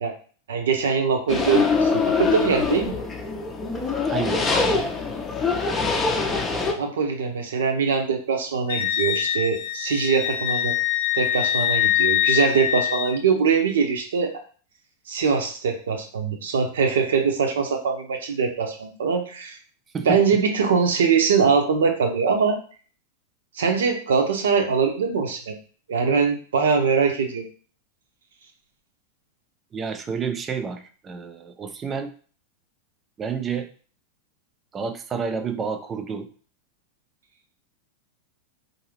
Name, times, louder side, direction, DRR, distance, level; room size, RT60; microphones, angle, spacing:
voice 1, 0.5-2.9 6.7-10.7 11.1-14.3 15.1-19.6 20.0-22.6 23.5-25.6 25.9-27.4, right 5 dB, 65° right, 5 dB, 0.8 m, -22 dB
sound 1, 1.3-6.7, left 4 dB, 15° left, 0.6 m, -23 dB
voice 2, 4.1-4.8 19.9-20.2 29.7-32.1 33.2-33.7 34.7-36.3, right 6 dB, 20° right, 8 dB, 0.4 m, -30 dB
Wind instrument woodwind instrument, 8.7-13.2, left 11 dB, 55° left, 0.6 m, -24 dB
4.6 x 2.6 x 3.1 m, 0.41 s
figure-of-eight pair, 90°, 0 cm